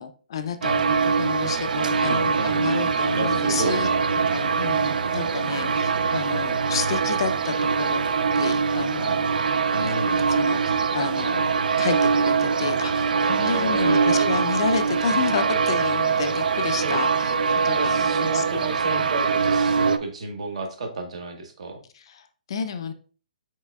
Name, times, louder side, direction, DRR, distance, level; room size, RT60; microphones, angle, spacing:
voice 1, 0.0-3.9 4.3-8.1 8.4-9.3 9.8-18.4 21.9-22.9, left 6 dB, 35° left, 8 dB, 0.3 m, -31 dB
sound 1, 0.6-20.0, right 5 dB, 85° right, 0.3 m, -23 dB
voice 2, 2.0-2.7 3.1-4.1 9.7-10.2 13.4-14.3 16.8-17.0 17.7-21.8, right 3 dB, 50° right, 4 dB, 0.9 m, -31 dB
4.5 x 4.2 x 2.3 m, 0.38 s
hypercardioid pair, 175°, 4 cm